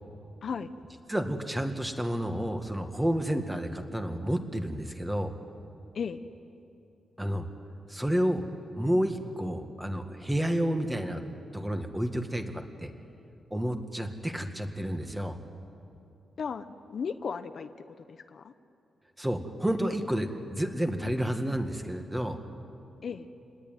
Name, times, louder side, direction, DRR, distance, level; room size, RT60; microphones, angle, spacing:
voice 1, 1.1-5.3 7.2-7.5 7.9-8.4 8.7-11.2 11.5-12.9 13.5-15.4 19.2-22.4, equal, 5° right, 5 dB, 1.9 m, -30 dB
voice 2, 16.4-18.5 23.0-23.3, left 6 dB, 55° left, 10 dB, 0.9 m, -36 dB
28.0 x 20.0 x 9.3 m, 2.7 s
wide cardioid pair, 125°, 0 cm